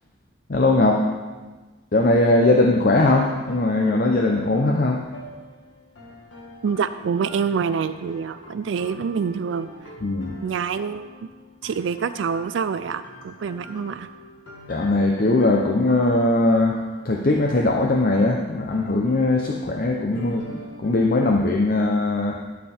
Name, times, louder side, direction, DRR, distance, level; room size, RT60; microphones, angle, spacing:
voice 1, 0.5-1.1 1.9-5.0 10.0-10.3 14.7-22.5, left 2 dB, 50° left, 1 dB, 0.7 m, -20 dB
sound 1, 2.4-21.4, equal, 75° left, 1.8 m, -44 dB
voice 2, 6.6-9.7 10.4-11.1 11.6-14.1, right 6 dB, 75° right, 12 dB, 0.4 m, -26 dB
12.0 x 6.6 x 4.3 m, 1.3 s
head